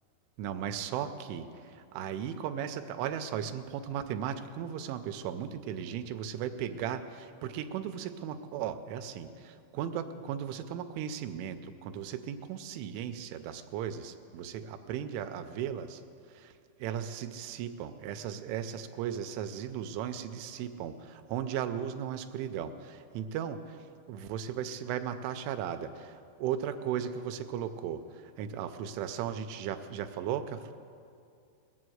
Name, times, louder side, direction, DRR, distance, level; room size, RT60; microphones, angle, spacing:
voice 1, 0.4-16.0 16.3-16.5 16.8-23.8 24.1-30.7, right 9 dB, 85° right, 9 dB, 3.1 m, -36 dB
19.5 x 8.1 x 7.8 m, 2.4 s
omnidirectional pair, 5.5 m